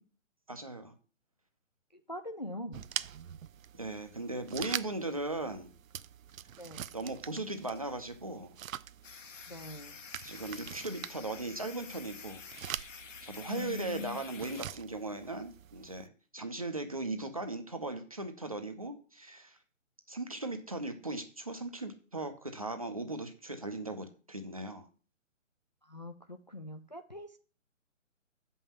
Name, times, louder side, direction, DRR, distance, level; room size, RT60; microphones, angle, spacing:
voice 1, 0.5-0.9 3.8-5.7 6.9-8.6 10.2-12.4 13.2-19.6 20.1-24.9, right 2 dB, 25° right, 6 dB, 0.6 m, -38 dB
voice 2, 1.9-2.9 6.6-6.8 9.5-10.0 13.5-14.2 25.8-27.4, left 1 dB, 35° left, 6 dB, 0.5 m, -43 dB
sound 1, 2.7-16.1, right 9 dB, 85° right, 0.6 m, -44 dB
sound 2, 9.0-14.6, left 5 dB, 70° left, 1.1 m, -49 dB
6.6 x 5.5 x 7.1 m, 0.38 s
hypercardioid pair, 175°, 40 cm